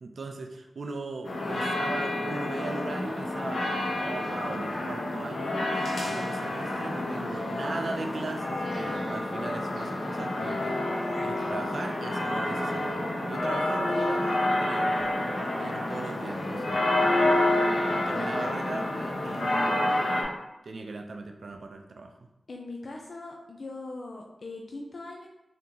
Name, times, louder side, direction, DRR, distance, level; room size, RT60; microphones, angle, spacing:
voice 1, 0.0-10.8 11.2-16.8 17.9-20.0 20.6-22.1, right 3 dB, 70° right, 4 dB, 0.3 m, -38 dB
sound 1, 1.2-20.2, left 1 dB, 90° left, 0.8 m, -29 dB
voice 2, 1.4-1.8 7.0-7.7 8.5-9.0 10.0-10.8 16.8-17.4 22.5-25.3, left 2 dB, 60° left, -1 dB, 0.4 m, -41 dB
3.5 x 2.8 x 3.8 m, 0.94 s
wide cardioid pair, 115°, 0 cm